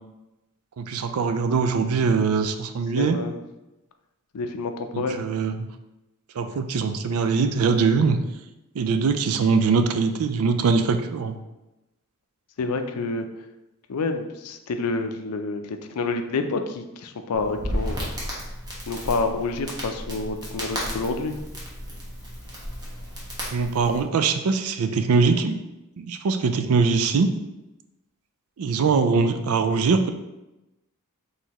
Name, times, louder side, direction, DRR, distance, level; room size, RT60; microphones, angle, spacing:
voice 1, 0.8-3.2 4.9-5.5 6.4-8.2 8.7-11.4 23.5-25.6 26.0-27.3 28.6-30.1, right 4 dB, 70° right, 8 dB, 0.4 m, -22 dB
voice 2, 3.0-3.4 4.3-5.2 12.6-13.3 13.9-18.1 18.9-21.4, left 3 dB, 90° left, 6 dB, 0.5 m, -28 dB
Crackle, 17.3-24.0, equal, 20° right, 1.0 m, -33 dB
4.5 x 3.3 x 2.9 m, 0.99 s
head